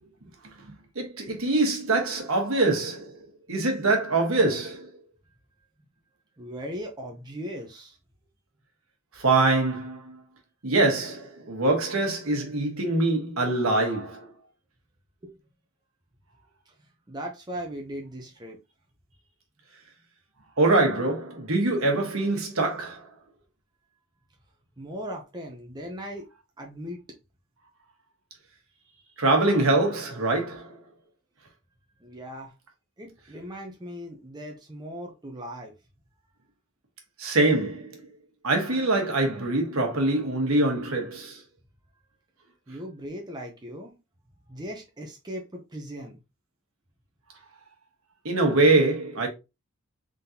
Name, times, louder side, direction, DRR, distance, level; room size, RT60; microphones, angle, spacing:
voice 1, 0.9-4.9 9.1-10.2 10.6-14.3 20.6-23.1 29.2-30.8 37.2-38.0 38.4-41.4 48.2-49.3, right 2 dB, 70° right, 1.4 m, -24 dB
voice 2, 6.4-8.0 15.2-15.4 16.7-16.8 17.1-18.6 24.8-26.3 26.6-27.0 32.0-32.5 33.0-35.7 42.7-43.9 44.5-46.2, equal, 20° right, 0.7 m, -38 dB
3.8 x 3.7 x 2.8 m
head